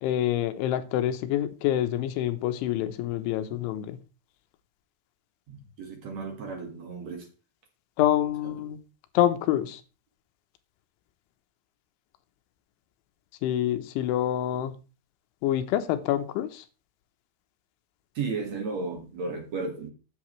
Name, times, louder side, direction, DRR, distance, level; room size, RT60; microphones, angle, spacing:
voice 1, 0.0-4.0 8.0-8.8 9.1-9.8 13.4-14.7 15.4-16.6, left 12 dB, 90° left, 3.4 m, -26 dB
voice 2, 5.5-7.3 18.1-19.9, right 4 dB, 50° right, 2.3 m, -34 dB
13.5 x 8.3 x 3.2 m
omnidirectional pair, 5.3 m